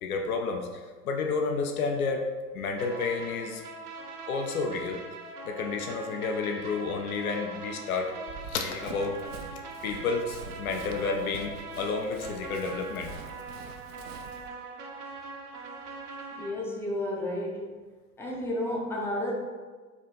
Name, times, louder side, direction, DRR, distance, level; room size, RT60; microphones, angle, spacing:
voice 1, 0.0-2.3 2.5-3.6 4.3-5.0 5.5-8.1 8.5-9.2 9.8-13.1 15.0-15.1, left 4 dB, 65° left, 3 dB, 0.7 m, -31 dB
sound 1, 2.8-16.5, right 4 dB, 75° right, 1.0 m, -42 dB
Run, 8.3-14.5, right 6 dB, 45° right, 0.5 m, -46 dB
voice 2, 16.3-17.8 18.2-19.3, left 1 dB, 5° left, -2 dB, 0.5 m, -32 dB
4.9 x 2.6 x 3.8 m, 1.4 s
figure-of-eight pair, 95°, 46 cm